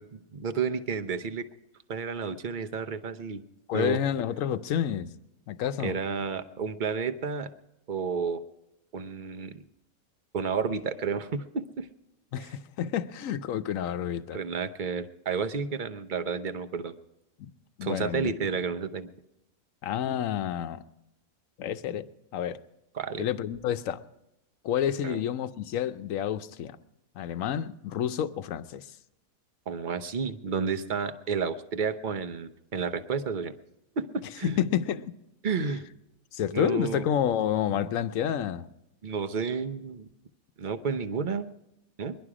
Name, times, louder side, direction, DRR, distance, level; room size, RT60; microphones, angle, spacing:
voice 1, 0.0-1.5 1.9-3.4 3.7-4.0 5.8-7.5 7.9-8.4 8.9-9.6 10.3-11.9 12.4-12.5 14.3-16.9 17.8-19.1 22.9-23.3 25.0-25.2 29.7-33.5 34.0-34.6 35.4-35.9 36.5-37.0 37.7-37.9 39.0-40.1 40.6-41.5 42.0-42.2, right 5 dB, 45° right, 0.7 m, -31 dB
voice 2, 3.7-5.1 5.5-5.9 12.3-14.4 17.4-17.5 17.8-18.3 19.8-20.8 21.6-22.1 22.3-22.6 23.2-24.0 24.6-26.8 27.2-28.9 34.4-35.1 36.3-38.7, left 9 dB, 70° left, 1.0 m, -29 dB
21.0 x 11.5 x 4.9 m
omnidirectional pair, 1.5 m